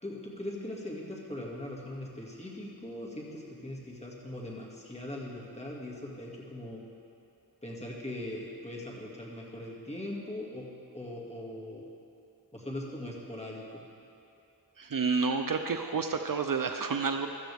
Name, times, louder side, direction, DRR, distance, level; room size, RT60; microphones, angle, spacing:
voice 1, 0.0-6.9 7.6-10.7 10.9-11.9 12.5-13.8, left 1 dB, 15° left, -4 dB, 2.3 m, -40 dB
voice 2, 14.8-17.3, right 5 dB, 55° right, 6 dB, 0.6 m, -29 dB
15.5 x 13.0 x 3.5 m, 2.7 s
wide cardioid pair, 75°, 39 cm